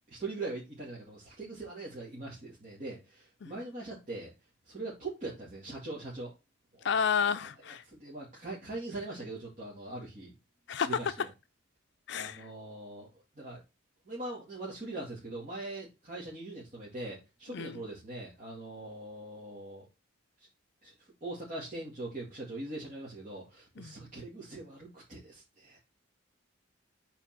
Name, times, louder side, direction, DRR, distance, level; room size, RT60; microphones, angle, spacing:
voice 1, 0.1-4.3 4.7-6.3 6.7-7.0 7.8-10.3 10.7-11.3 12.1-13.6 14.0-19.8 20.4-20.5 20.8-25.8, right 2 dB, 40° right, 2.3 m, -42 dB
voice 2, 6.8-7.8 10.7-11.1 12.1-12.5 17.5-17.8 23.8-23.9, left 6 dB, 60° left, 0.4 m, -31 dB
5.6 x 4.3 x 5.8 m
head